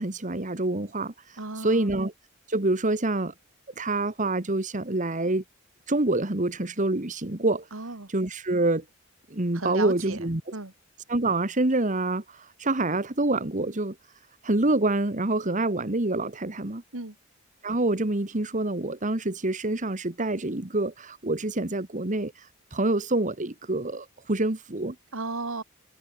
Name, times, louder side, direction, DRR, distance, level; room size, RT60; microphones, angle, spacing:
voice 1, 0.0-2.1 2.5-3.3 3.8-5.4 5.9-7.7 8.1-8.9 9.3-10.4 11.1-14.0 14.4-16.8 17.6-22.5 22.7-25.0, right 2 dB, 40° right, 1.7 m, -26 dB
voice 2, 1.4-1.9 7.7-8.1 9.5-10.2 10.5-10.7 16.9-17.2 25.1-25.6, right 3 dB, 85° right, 2.4 m, -34 dB
head